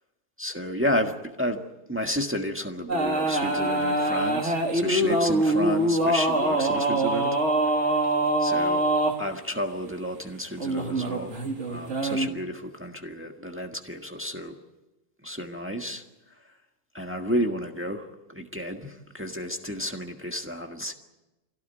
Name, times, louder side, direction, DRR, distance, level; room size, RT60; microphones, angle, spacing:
voice 1, 0.4-1.6 1.9-7.4 7.9-8.0 8.4-8.8 9.2-11.3 11.7-14.5 15.2-16.0 16.9-20.9, equal, 10° right, 3 dB, 1.6 m, -31 dB
sound 1, 2.9-9.1 10.6-12.3, right 1 dB, 90° right, 2.8 m, -24 dB
25.0 x 17.0 x 9.2 m, 1.0 s
omnidirectional pair, 1.2 m